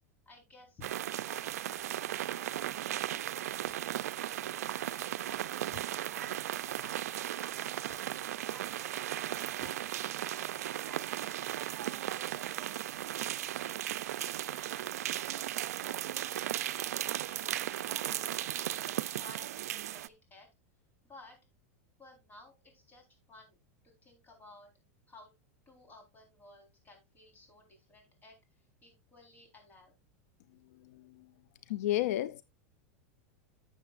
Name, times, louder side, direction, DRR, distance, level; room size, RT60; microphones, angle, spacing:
voice 1, 0.3-4.0 4.5-6.4 6.8-8.2 8.5-13.9 14.3-16.7 17.2-20.5 21.0-21.4 22.0-23.6 24.0-24.7 25.1-25.3 25.7-29.9, left 2 dB, 20° left, 4.0 m, -57 dB
sound 1, 0.8-20.1, right 12 dB, 85° right, 0.4 m, -36 dB
voice 2, 31.7-32.4, left 14 dB, 75° left, 0.4 m, -31 dB
11.5 x 7.6 x 2.4 m
supercardioid pair, 125°, 8 cm